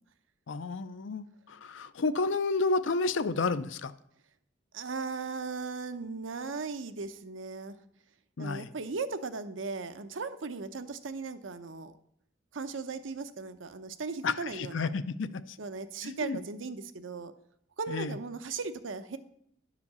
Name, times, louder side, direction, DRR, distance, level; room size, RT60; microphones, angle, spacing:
voice 1, 0.5-3.9 8.4-8.7 14.2-15.6 16.0-16.4 17.9-18.2, left 3 dB, 75° left, 13 dB, 0.6 m, -31 dB
voice 2, 4.7-7.8 8.4-11.9 12.5-14.9 15.6-17.3 17.8-19.2, right 4 dB, 80° right, 10 dB, 0.8 m, -37 dB
10.5 x 5.0 x 6.9 m, 0.69 s
head